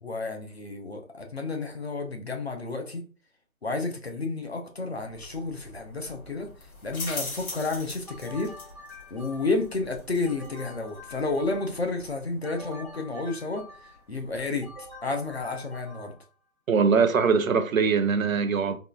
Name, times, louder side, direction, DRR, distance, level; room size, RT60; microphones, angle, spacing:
voice 1, 0.0-3.1 3.6-6.5 6.8-8.6 9.1-13.7 14.1-14.7 15.0-16.1, left 3 dB, 50° left, 0.6 m, -31 dB
sound 1, 5.0-15.6, left 2 dB, 85° left, 1.5 m, -44 dB
sound 2, 8.1-9.7 10.2-11.9 12.4-14.1 14.6-16.3, left 2 dB, ahead, 0.5 m, -46 dB
voice 2, 16.7-18.8, right 5 dB, 75° right, 0.6 m, -22 dB
3.6 x 2.4 x 2.3 m
hypercardioid pair, 180°, 42 cm